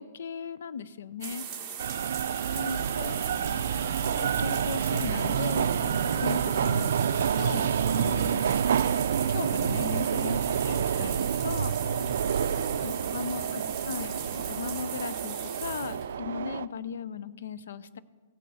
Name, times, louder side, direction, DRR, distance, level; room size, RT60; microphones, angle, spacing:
voice 1, 0.0-1.5 2.5-3.2 4.2-7.0 7.3-8.5 9.3-11.7 12.8-14.1 14.5-18.0, left 6 dB, 80° left, 16 dB, 0.5 m, -37 dB
sound 1, 1.2-16.2, right 7 dB, 20° right, 1.7 m, -39 dB
voice 2, 1.8-4.3 6.0-6.2 8.1-8.3 11.8-12.0 12.3-14.5 16.2-16.4, left 2 dB, 30° left, -8 dB, 4.1 m, -49 dB
sound 2, 1.8-16.7, right 8 dB, 75° right, 0.4 m, -28 dB
16.0 x 6.2 x 7.0 m, 1.4 s
hypercardioid pair, 165°, 0 cm